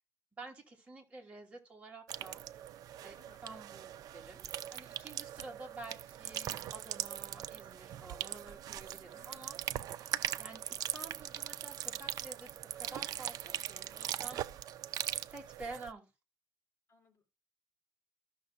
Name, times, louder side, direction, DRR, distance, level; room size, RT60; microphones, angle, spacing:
voice 1, 0.4-2.7 3.0-3.2 3.4-9.6 10.4-14.8 15.2-16.1, right 3 dB, 20° right, 2.8 m, -50 dB
sound 1, 2.1-15.9, right 11 dB, 85° right, 0.5 m, -40 dB
voice 2, 3.2-3.5 9.1-9.5 10.1-10.4 15.0-15.2 16.9-17.2, left 5 dB, 40° left, 3.5 m, -65 dB
14.5 x 6.4 x 2.4 m
cardioid pair, 160°, 6 cm